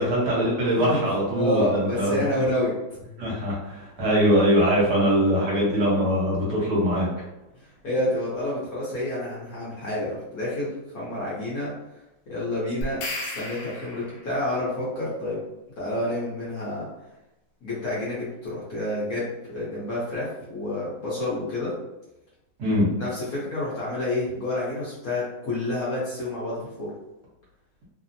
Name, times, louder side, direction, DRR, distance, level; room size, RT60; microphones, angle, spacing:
voice 1, 0.0-2.2 3.2-7.1 22.6-22.9, equal, 60° right, -6 dB, 1.4 m, -22 dB
voice 2, 1.3-2.7 7.8-11.7 12.3-15.4 15.8-16.9 17.6-21.7 23.0-26.9, left 1 dB, 55° left, -7 dB, 1.2 m, -29 dB
sound 1, 12.8-14.4, left 2 dB, 90° left, 1.4 m, -34 dB
3.3 x 2.0 x 2.6 m, 0.93 s
omnidirectional pair, 2.1 m